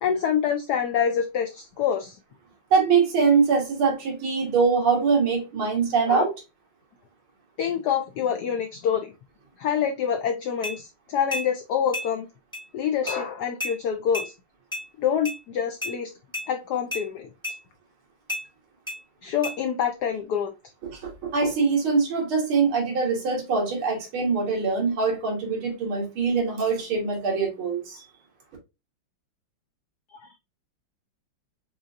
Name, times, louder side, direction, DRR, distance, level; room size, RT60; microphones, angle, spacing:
voice 1, 0.0-2.2 6.1-6.2 7.6-9.1 9.6-12.3 12.7-14.3 15.0-16.1 16.5-17.3 19.2-20.5 30.1-30.3, left 8 dB, 85° left, 0.8 m, -26 dB
voice 2, 2.7-6.3 20.9-28.0, right 5 dB, 80° right, 2.3 m, -23 dB
sound 1, 10.6-10.8 11.3-11.5 11.9-12.1 12.5-12.6 13.1-13.2 13.6-13.7 14.1-14.3 14.7-14.8 15.2-15.4 15.8-15.9 16.3-16.5 16.9-17.0 17.4-17.6 18.3-18.4 18.9-19.0 19.4-19.6, left 1 dB, 5° left, 0.9 m, -31 dB
5.4 x 2.5 x 2.4 m
omnidirectional pair, 2.3 m